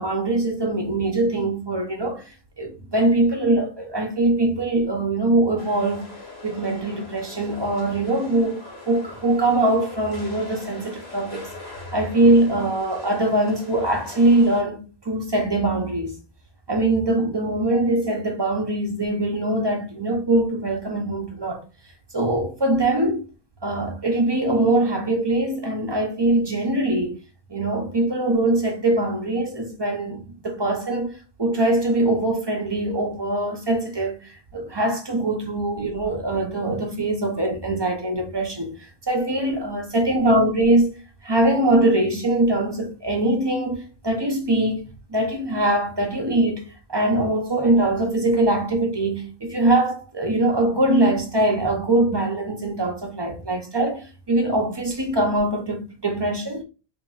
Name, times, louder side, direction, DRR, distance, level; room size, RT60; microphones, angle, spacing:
voice 1, 0.0-2.2 2.6-6.1 6.4-8.6 8.9-11.5 11.9-16.1 16.7-21.6 22.1-23.2 23.6-27.2 27.5-38.7 39.1-56.6, right 2 dB, 30° right, 0.6 m, -22 dB
sound 1, 5.6-14.6, left 3 dB, 70° left, 1.4 m, -41 dB
4.7 x 2.8 x 2.3 m
omnidirectional pair, 1.1 m